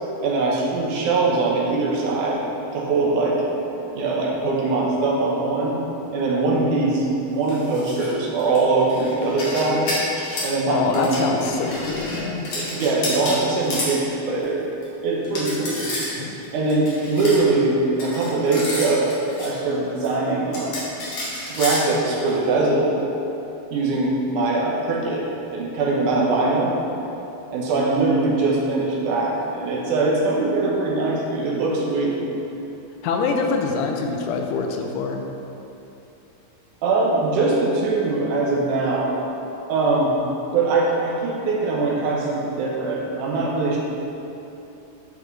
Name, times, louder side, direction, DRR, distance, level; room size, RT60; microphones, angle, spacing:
voice 1, 0.2-2.4 2.7-3.4 4.0-5.8 6.1-9.9 10.4-11.1 12.5-14.7 15.0-15.9 16.5-19.1 19.4-20.8 21.5-22.9 23.7-25.2 25.5-26.7 27.5-32.3 36.8-39.2 39.7-40.2 40.5-43.8, right 3 dB, 80° right, -4 dB, 2.4 m, -22 dB
sound 1, 7.4-8.1 8.4-10.5 10.9-14.0 14.4-14.5 14.8-14.9 15.2-16.1 16.4-17.4 18.0-19.5 20.0-20.1 20.5-22.4, left 1 dB, 55° left, 2.3 m, -30 dB
voice 2, 10.7-12.5 16.2-16.3 33.0-35.3, left 4 dB, 85° left, 3 dB, 2.2 m, -25 dB
10.5 x 4.9 x 3.3 m, 2.9 s
omnidirectional pair, 3.6 m